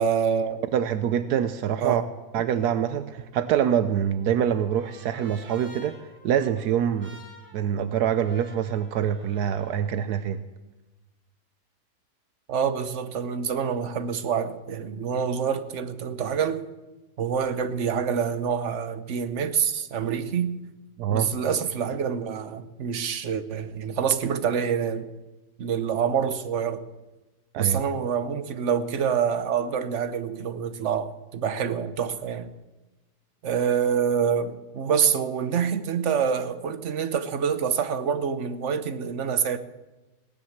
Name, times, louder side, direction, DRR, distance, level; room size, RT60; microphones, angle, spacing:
voice 1, 0.0-0.6 1.8-2.0 12.5-16.6 17.2-20.6 21.1-25.1 25.6-26.8 27.6-32.5 33.4-39.6, right 7 dB, 55° right, 1.1 m, -26 dB
voice 2, 0.7-2.0 2.3-6.0 6.2-7.2 7.5-10.4 21.0-21.3 27.5-27.8, right 9 dB, 80° right, 1.2 m, -25 dB
Trumpet, 3.9-9.9, left 1 dB, 5° right, 4.8 m, -51 dB
17.5 x 10.5 x 7.2 m
omnidirectional pair, 1.7 m